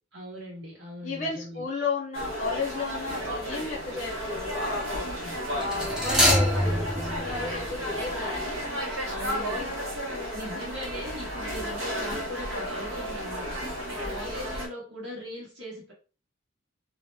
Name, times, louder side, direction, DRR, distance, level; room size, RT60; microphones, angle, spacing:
voice 1, 0.1-1.7 5.0-5.3 9.0-9.7 10.3-13.6 13.9-15.9, equal, 55° right, -5 dB, 1.4 m, -40 dB
voice 2, 1.0-5.1 5.5-8.6 10.1-10.4 13.9-14.2, left 4 dB, 40° left, -4 dB, 0.7 m, -34 dB
sound 1, 2.1-14.7, equal, 80° right, 1.0 m, -33 dB
sound 2, 3.2-3.5 5.6-8.4 8.7-8.8, equal, 5° right, 0.4 m, -26 dB
2.7 x 2.1 x 3.3 m, 0.35 s
head